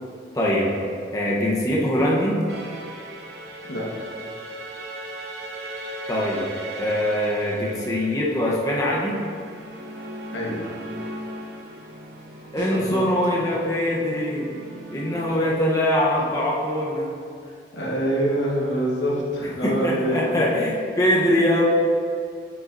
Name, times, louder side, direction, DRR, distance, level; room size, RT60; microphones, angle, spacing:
voice 1, 0.3-0.7 1.1-2.4 6.1-6.5 6.8-9.2 12.5-14.5 14.9-17.1 19.6-21.6, left 1 dB, 20° left, -4 dB, 0.8 m, -22 dB
sound 1, 2.5-15.3, right 1 dB, 65° right, 0.7 m, -38 dB
voice 2, 3.6-4.1 10.3-10.8 12.7-13.0 17.4-20.3, right 1 dB, 90° left, -3 dB, 1.3 m, -26 dB
Snare drum, 12.6-13.5 17.9-18.0, equal, 85° right, 1.6 m, -40 dB
8.3 x 5.7 x 2.6 m, 2.4 s
head